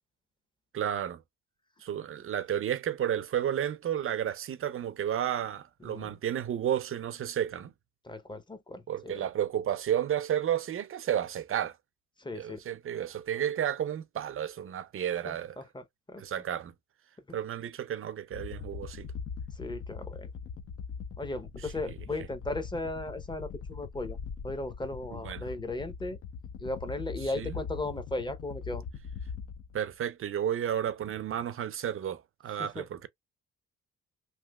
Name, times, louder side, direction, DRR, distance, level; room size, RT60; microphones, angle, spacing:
voice 1, 0.7-1.2 1.8-7.7 8.9-11.8 12.3-15.6 16.2-16.7 17.3-19.1 21.6-21.7 25.1-25.5 27.3-27.6 29.7-33.1, right 10 dB, 45° right, 0.6 m, -32 dB
voice 2, 8.0-9.3 12.2-12.6 15.3-16.2 19.5-20.3 21.2-24.2 24.4-26.2 26.6-28.8 32.6-32.9, left 2 dB, 15° left, 0.7 m, -37 dB
sound 1, 18.3-29.9, left 6 dB, 50° left, 0.6 m, -41 dB
3.2 x 2.7 x 2.3 m
cardioid pair, 90°, 30 cm